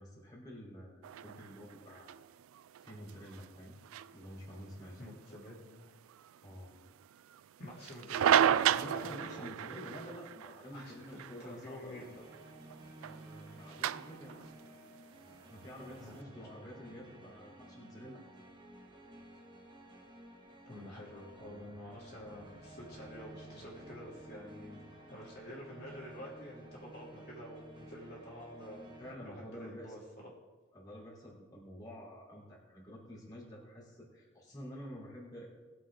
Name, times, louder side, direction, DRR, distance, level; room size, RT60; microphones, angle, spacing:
voice 1, 0.0-2.1 2.8-3.7 4.1-5.0 6.4-6.7 8.8-12.1 13.0-14.5 15.5-18.3 29.0-29.9 30.7-35.5, equal, 20° left, -6 dB, 3.3 m, -49 dB
sound 1, 1.0-16.2, right 9 dB, 70° right, 0.3 m, -35 dB
voice 2, 5.0-5.9 7.6-9.5 10.7-12.2 16.0-16.5 20.6-28.9 29.2-30.3, equal, 50° left, -5 dB, 3.0 m, -49 dB
sound 2, 11.9-29.1, right 1 dB, 25° right, 1.7 m, -53 dB
20.5 x 7.6 x 3.8 m, 1.3 s
head